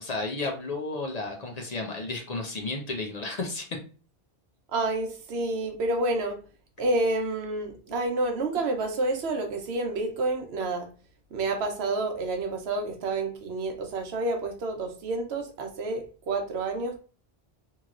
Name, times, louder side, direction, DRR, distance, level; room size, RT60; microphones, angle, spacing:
voice 1, 0.0-3.8, left 3 dB, 50° left, 2 dB, 0.6 m, -33 dB
voice 2, 4.7-6.4 6.8-10.9 11.3-17.0, right 2 dB, 90° right, 4 dB, 1.0 m, -29 dB
3.0 x 2.8 x 2.4 m, 0.37 s
omnidirectional pair, 1.1 m